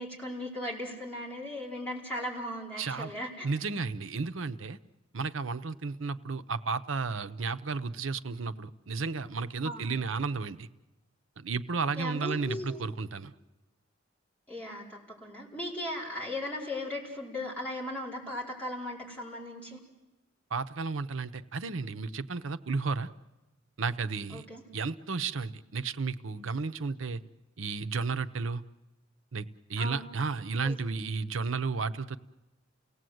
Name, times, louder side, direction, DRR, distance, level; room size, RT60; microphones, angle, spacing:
voice 1, 0.0-3.5 9.6-10.0 12.0-12.8 14.5-19.8 24.3-24.6 29.8-30.1 30.6-30.8, left 1 dB, 10° left, -5 dB, 4.8 m, -37 dB
voice 2, 2.8-3.1 3.4-4.8 5.1-10.7 11.4-13.3 20.5-23.1 23.8-24.5 24.7-27.2 27.6-28.6 29.3-32.2, right 4 dB, 90° right, 11 dB, 0.8 m, -33 dB
29.5 x 17.5 x 7.8 m, 1.1 s
head